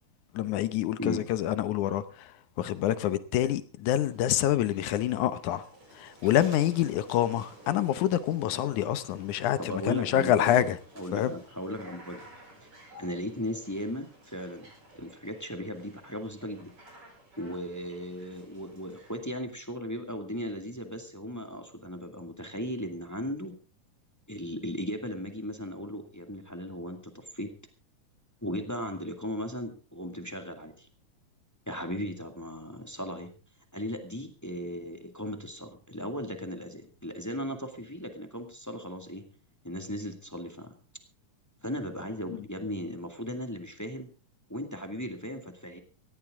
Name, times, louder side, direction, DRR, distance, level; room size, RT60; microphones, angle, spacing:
voice 1, 0.3-2.3 2.6-5.6 5.9-10.8 11.1-11.3, left 12 dB, 75° left, 2.2 m, -27 dB
sound 1, 3.9-19.2, right 1 dB, 40° right, 7.4 m, -53 dB
voice 2, 9.6-10.6 10.9-12.3 13.0-14.7 14.9-16.7 17.4-23.5 24.3-27.5 28.4-30.9 31.7-33.3 33.7-39.2 39.6-40.7 41.6-44.1 44.5-45.8, equal, 10° left, 1.3 m, -37 dB
18.0 x 15.5 x 3.7 m
omnidirectional pair, 3.7 m